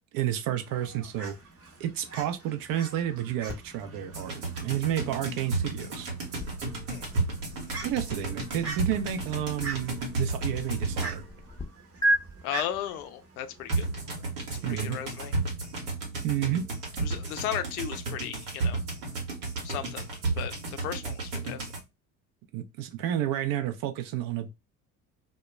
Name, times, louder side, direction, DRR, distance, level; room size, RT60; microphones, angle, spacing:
voice 1, 0.1-1.4 1.8-4.4 4.6-6.1 7.8-11.2 14.6-15.0 16.2-16.7 22.5-24.5, right 11 dB, 50° right, 0.6 m, -30 dB
Fowl, 0.6-14.2, right 4 dB, 30° right, 0.9 m, -45 dB
sound 1, 3.5-11.6 12.0-12.2, right 1 dB, 10° left, 0.5 m, -36 dB
sound 2, 4.1-11.4 13.7-21.8, right 3 dB, 75° right, 1.0 m, -33 dB
voice 2, 12.4-13.9 14.5-15.3 17.0-18.8 19.6-20.1 20.4-21.7, left 11 dB, 80° left, 0.5 m, -35 dB
2.1 x 2.1 x 3.1 m
hypercardioid pair, 60°, 44 cm